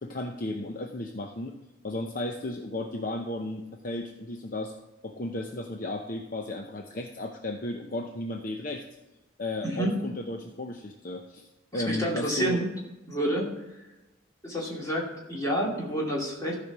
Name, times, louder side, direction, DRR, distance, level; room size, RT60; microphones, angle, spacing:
voice 1, 0.0-1.5 1.8-4.7 5.0-8.8 9.4-12.6, left 2 dB, 45° left, 3 dB, 0.7 m, -34 dB
voice 2, 9.6-10.0 11.7-12.7 13.1-13.8 14.4-16.5, right 1 dB, 15° left, -3 dB, 2.6 m, -29 dB
14.0 x 5.1 x 6.1 m, 1.0 s
head